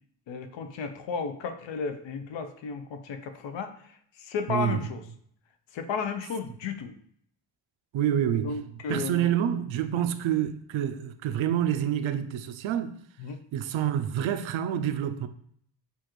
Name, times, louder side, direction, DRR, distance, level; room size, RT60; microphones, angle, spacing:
voice 1, 0.3-5.0 5.7-6.9 8.4-9.3 9.9-10.1 13.2-13.4, left 5 dB, 75° left, 0.7 m, -34 dB
voice 2, 4.5-4.9 7.9-13.0 13.5-15.3, right 10 dB, 85° right, 0.5 m, -28 dB
6.9 x 2.4 x 3.0 m
wide cardioid pair, 140°, 45 cm